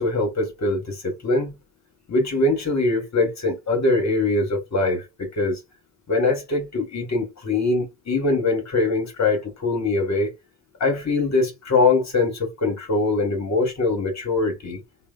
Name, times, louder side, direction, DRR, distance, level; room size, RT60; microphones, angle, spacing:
voice 1, 0.0-1.5 2.1-5.6 6.1-10.3 10.8-14.8, left 3 dB, 40° left, 1.3 m, -22 dB
2.6 x 2.2 x 2.3 m
hypercardioid pair, 45°, 43 cm